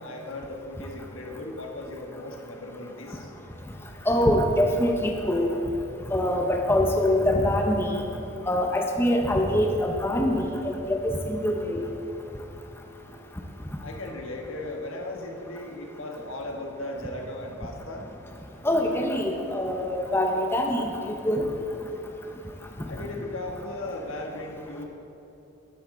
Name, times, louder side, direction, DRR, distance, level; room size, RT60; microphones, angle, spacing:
voice 1, 0.0-3.3 13.8-18.1 22.8-24.8, left 1 dB, 85° left, 1 dB, 1.3 m, -37 dB
voice 2, 4.1-5.5 6.1-8.0 8.5-11.9 18.6-20.9 21.2-21.5, left 1 dB, 10° left, 2 dB, 0.7 m, -24 dB
12.5 x 9.2 x 3.7 m, 2.9 s
head